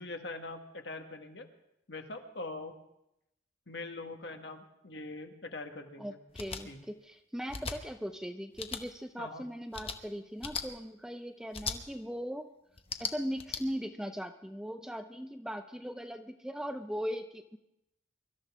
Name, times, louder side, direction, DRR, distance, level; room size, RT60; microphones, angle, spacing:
voice 1, 0.0-1.4 1.9-2.7 3.7-6.2 6.6-6.9 9.2-9.4, left 2 dB, 60° left, 5 dB, 1.5 m, -42 dB
voice 2, 6.0-12.5 13.0-17.6, equal, 5° right, 7 dB, 0.5 m, -39 dB
sound 1, 6.3-6.6 7.5-7.8 8.6-8.8 9.7-10.0 10.4-10.6 11.5-11.8 12.8-13.6, left 5 dB, 30° left, 0.9 m, -37 dB
23.5 x 13.0 x 3.6 m, 0.83 s
head